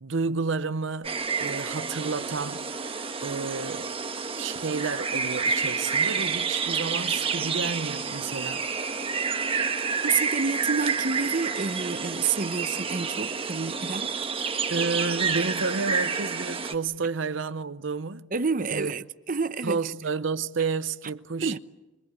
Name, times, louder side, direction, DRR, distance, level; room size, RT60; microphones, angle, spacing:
voice 1, 0.0-2.6 3.2-3.9 4.4-8.7 14.7-18.3 18.7-18.9 19.6-21.6, right 4 dB, 85° right, 0.8 m, -30 dB
sound 1, 1.0-16.7, right 5 dB, 30° right, 1.4 m, -29 dB
voice 2, 10.0-14.2 18.3-19.8 21.4-21.6, right 5 dB, 45° right, 0.8 m, -29 dB
25.0 x 24.5 x 8.4 m
head